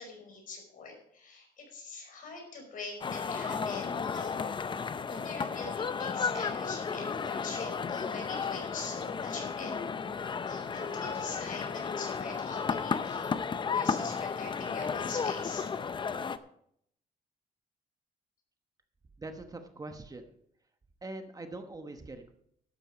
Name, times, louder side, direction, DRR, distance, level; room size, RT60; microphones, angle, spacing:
voice 1, 0.0-4.5 5.1-9.7 10.5-13.4 13.7-15.7, left 4 dB, 60° left, 2 dB, 5.2 m, -43 dB
sound 1, 3.0-16.4, left 5 dB, 30° left, 0.6 m, -33 dB
voice 2, 19.2-20.3 21.0-22.3, right 2 dB, 25° right, 6 dB, 1.1 m, -43 dB
12.0 x 9.0 x 5.1 m, 0.70 s
cardioid pair, 120°, 16 cm